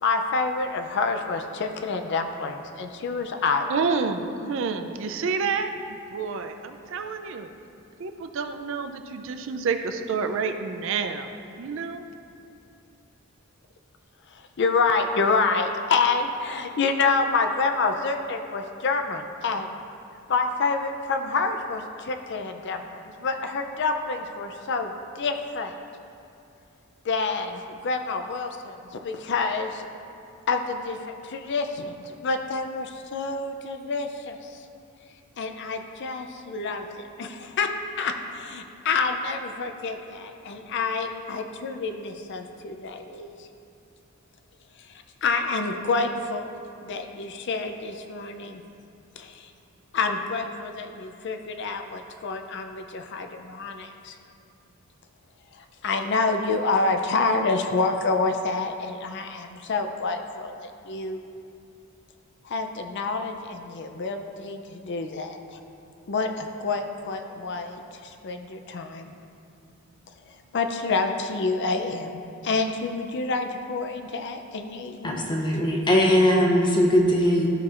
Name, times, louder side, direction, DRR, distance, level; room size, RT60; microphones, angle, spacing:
voice 1, 0.0-3.7 14.6-19.7 20.3-25.7 27.0-29.9 30.5-34.4 35.4-37.7 38.0-43.3 45.2-48.6 49.2-49.5 49.9-54.1 55.8-61.2 62.4-65.6 66.1-69.1 70.5-75.2, left 4 dB, 55° left, 6 dB, 0.4 m, -28 dB
voice 2, 3.7-7.5 8.0-11.3 11.6-12.0, right 5 dB, 60° right, 7 dB, 0.4 m, -29 dB
voice 3, 75.0-77.5, equal, 20° left, 0 dB, 0.8 m, -20 dB
12.5 x 5.9 x 2.5 m, 2.7 s
head